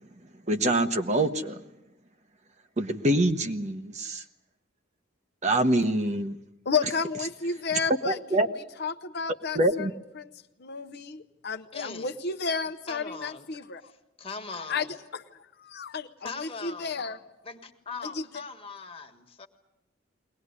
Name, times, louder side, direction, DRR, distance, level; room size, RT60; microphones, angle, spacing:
voice 1, 0.5-1.6 2.8-4.2 5.4-6.4 8.0-8.5 9.5-9.9, right 1 dB, 35° right, 8 dB, 1.0 m, -25 dB
voice 2, 6.6-8.2 8.6-9.9 10.1-10.3 10.6-13.9 14.7-17.2 18.0-18.2, left 5 dB, 55° left, 8 dB, 0.8 m, -32 dB
voice 3, 11.7-12.1 12.9-13.5 14.2-14.9 16.2-17.0 17.4-19.5, left 4 dB, 30° left, 5 dB, 1.6 m, -40 dB
22.0 x 19.0 x 9.7 m, 0.93 s
head